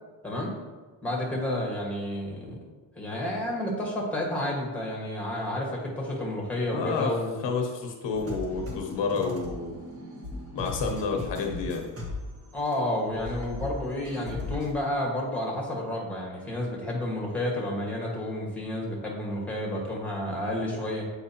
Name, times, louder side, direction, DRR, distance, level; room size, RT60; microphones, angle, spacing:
voice 1, 0.2-0.5 1.0-2.5 2.9-7.4 12.5-21.0, left 1 dB, 5° left, -2 dB, 1.6 m, -30 dB
voice 2, 6.7-7.1 7.4-9.7 10.5-11.9, left 4 dB, 75° left, 2 dB, 1.0 m, -29 dB
sound 1, 8.1-12.8 13.0-14.7, left 2 dB, 30° right, 1.4 m, -38 dB
7.8 x 4.6 x 2.9 m, 1.3 s
cardioid pair, 120°, 43 cm